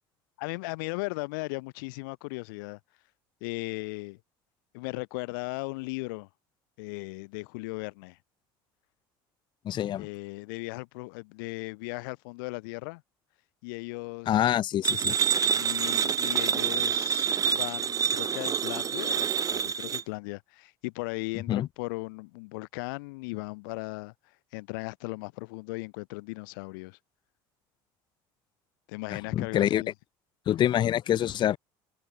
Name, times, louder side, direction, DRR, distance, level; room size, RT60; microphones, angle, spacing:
voice 1, 0.4-2.8 3.4-4.2 4.7-6.3 6.8-8.2 10.0-13.0 13.6-14.5 15.5-24.1 24.5-27.0 28.9-29.9, left 27 dB, 85° left, 0.8 m, -37 dB
voice 2, 9.6-10.1 14.3-15.2 21.5-21.7 29.1-29.8 30.5-31.6, left 11 dB, 45° left, 0.8 m, -26 dB
sound 1, 14.8-20.0, right 8 dB, 35° right, 1.0 m, -27 dB
open air
supercardioid pair, 100°, 11 cm